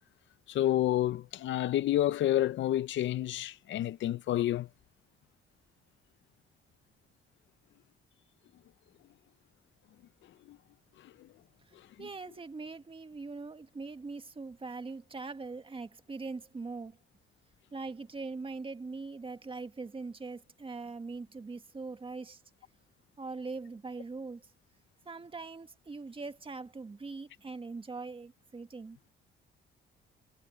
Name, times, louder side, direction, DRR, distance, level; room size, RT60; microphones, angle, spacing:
voice 1, 0.5-4.7 10.5-10.6 11.0-11.3 12.0-12.1, left 13 dB, 70° left, 0.7 m, -29 dB
voice 2, 12.0-17.0 17.7-22.4 23.2-24.5 25.1-29.0, right 3 dB, 25° right, 1.8 m, -41 dB
cardioid pair, 90°, 20 cm